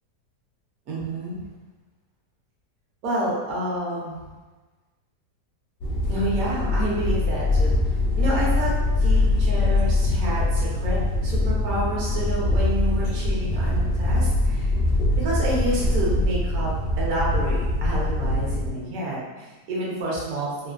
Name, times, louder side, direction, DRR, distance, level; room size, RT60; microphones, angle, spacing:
voice 1, 0.9-1.5 3.0-4.2 6.1-7.8 8.2-11.0 11.2-14.7 15.2-16.7 17.0-20.7, right 1 dB, 65° right, -6 dB, 1.1 m, -29 dB
sound 1, 5.8-18.7, left 2 dB, 70° left, 0.8 m, -23 dB
3.0 x 2.1 x 2.4 m, 1.3 s
omnidirectional pair, 1.8 m